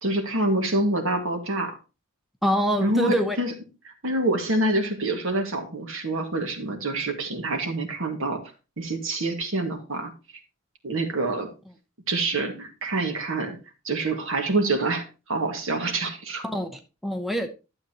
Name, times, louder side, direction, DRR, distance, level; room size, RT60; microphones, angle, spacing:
voice 1, 0.0-1.8 2.8-3.5 3.9-8.4 8.8-10.1 10.8-11.5 12.1-13.6 13.8-16.4, right 2 dB, 65° right, 4 dB, 2.0 m, -26 dB
voice 2, 2.4-3.4 16.4-17.5, equal, ahead, 5 dB, 0.8 m, -25 dB
12.0 x 7.7 x 2.9 m, 0.29 s
head